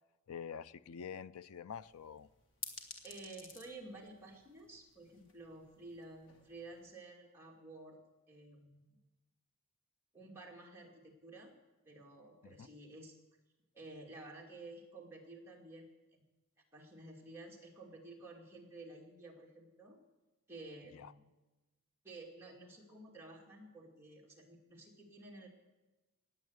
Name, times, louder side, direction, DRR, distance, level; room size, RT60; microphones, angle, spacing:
voice 1, 0.3-2.3 12.4-12.7 20.9-21.1, left 7 dB, 85° left, 0.5 m, -47 dB
sound 1, 1.7-6.9, left 4 dB, 60° left, 1.7 m, -53 dB
voice 2, 3.0-8.0 8.3-9.0 10.1-11.5 11.9-13.1 13.7-16.2 16.7-20.0 20.5-21.3 22.0-25.5, right 2 dB, 10° right, 2.4 m, -52 dB
18.5 x 7.8 x 8.0 m
head